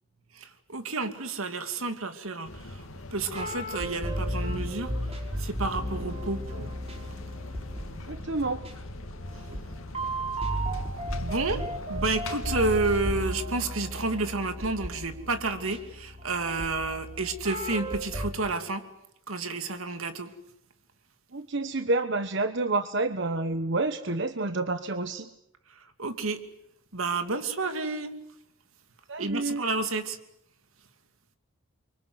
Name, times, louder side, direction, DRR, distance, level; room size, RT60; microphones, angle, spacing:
voice 1, 0.3-6.8 9.5-9.6 10.7-10.8 11.2-18.8 19.3-20.3 25.7-26.4 26.9-28.1 29.2-30.2, right 3 dB, 85° right, 8 dB, 2.7 m, -30 dB
sound 1, 2.4-13.4, left 2 dB, 80° left, 2.3 m, -42 dB
sound 2, 3.2-18.3, equal, 30° right, 5.3 m, -35 dB
voice 2, 8.1-8.6 21.3-25.3 29.1-29.6, right 2 dB, 60° right, 9 dB, 1.1 m, -29 dB
29.5 x 24.0 x 8.0 m, 0.79 s
head